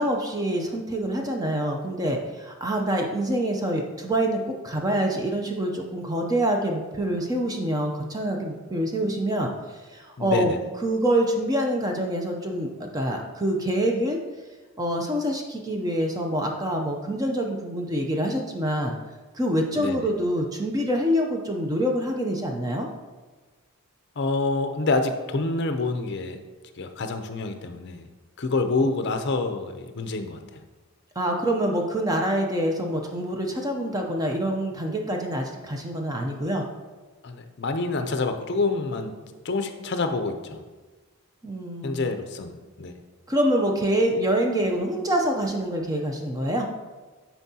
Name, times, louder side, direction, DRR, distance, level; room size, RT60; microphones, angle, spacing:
voice 1, 0.0-10.5 10.8-14.2 14.8-19.0 19.3-22.9 31.2-36.6 41.4-42.0 43.3-46.7, right 1 dB, 15° right, 2 dB, 0.5 m, -26 dB
voice 2, 10.2-10.6 19.8-20.1 24.2-26.4 26.8-28.1 28.4-30.6 37.2-40.6 41.8-42.9, left 3 dB, 50° left, 7 dB, 0.5 m, -27 dB
9.6 x 4.5 x 2.8 m, 1.3 s
head